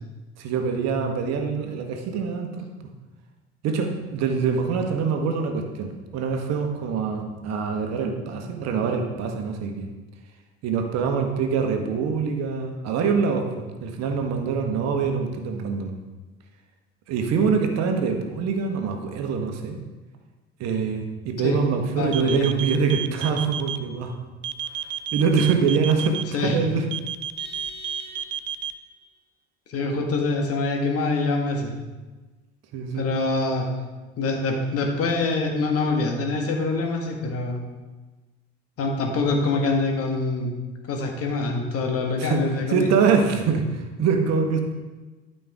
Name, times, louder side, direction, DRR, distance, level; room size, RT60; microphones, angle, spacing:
voice 1, 0.4-2.6 3.6-9.9 10.6-15.9 17.1-19.8 20.6-24.2 25.1-26.9 32.7-33.0 42.2-42.4 42.7-44.6, right 5 dB, 55° right, 4 dB, 1.2 m, -24 dB
voice 2, 22.0-22.5 26.3-26.6 29.7-31.7 32.9-33.7 34.2-37.6 38.8-40.5 40.9-42.9, left 3 dB, 45° left, 2 dB, 1.6 m, -25 dB
sound 1, 22.1-23.8 24.4-26.2 26.9-28.7, right 9 dB, 40° right, 0.5 m, -30 dB
Vehicle horn car horn honking, 27.4-28.8, left 1 dB, 85° left, 2.6 m, -42 dB
12.0 x 5.4 x 3.6 m, 1.2 s
figure-of-eight pair, 55°, 32 cm